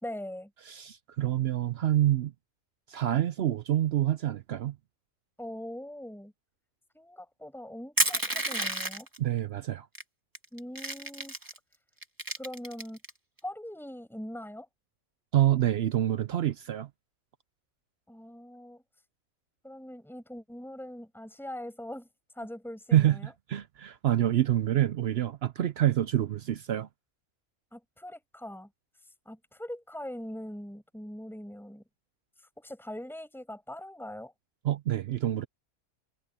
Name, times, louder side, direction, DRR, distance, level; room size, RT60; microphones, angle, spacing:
voice 1, 0.0-0.5 5.4-6.3 6.9-9.1 10.5-11.3 12.4-13.0 13.4-14.7 18.1-18.8 19.6-22.1 22.4-23.3 27.7-28.7 29.3-31.8 32.6-34.3, left 1 dB, ahead, 5.9 m, -41 dB
voice 2, 0.7-2.3 2.9-4.7 9.2-9.9 15.3-16.9 22.9-26.9 34.6-35.5, right 12 dB, 65° right, 0.6 m, -27 dB
Crushing, 8.0-9.2 9.9-10.0 10.3-11.6 12.0-13.1, right 1 dB, 15° right, 2.0 m, -30 dB
omnidirectional pair, 1.5 m